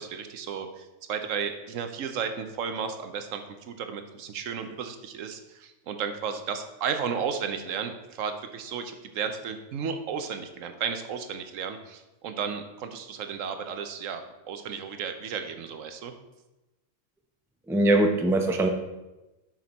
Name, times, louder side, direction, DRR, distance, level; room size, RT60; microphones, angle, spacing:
voice 1, 0.0-3.4 3.7-16.1, right 6 dB, 85° right, 7 dB, 1.1 m, -33 dB
voice 2, 17.7-18.7, right 1 dB, 5° right, 4 dB, 0.4 m, -22 dB
6.6 x 6.0 x 4.1 m, 1.0 s
omnidirectional pair, 1.3 m